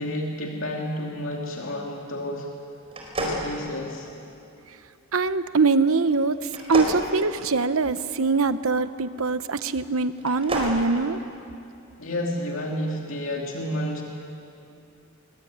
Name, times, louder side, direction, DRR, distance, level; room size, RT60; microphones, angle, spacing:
voice 1, 0.0-2.5 3.2-4.1 12.0-14.0, left 1 dB, 65° left, 0 dB, 2.6 m, -30 dB
sound 1, 2.9-4.3 6.5-8.1 10.1-10.8, right 1 dB, 25° right, 4.8 m, -31 dB
voice 2, 5.1-11.2, right 4 dB, 70° right, 12 dB, 0.9 m, -23 dB
23.0 x 22.5 x 9.4 m, 2.6 s
head